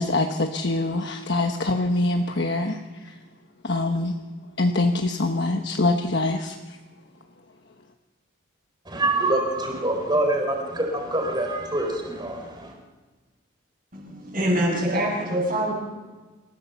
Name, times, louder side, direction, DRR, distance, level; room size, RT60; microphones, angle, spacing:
voice 1, 0.0-3.2 3.6-4.1 4.6-6.8, left 2 dB, 55° left, 4 dB, 1.2 m, -24 dB
voice 2, 8.8-12.7, right 2 dB, 20° right, 2 dB, 4.4 m, -25 dB
voice 3, 13.9-15.8, right 1 dB, 40° right, -7 dB, 7.3 m, -24 dB
27.5 x 16.0 x 7.0 m, 1.3 s
head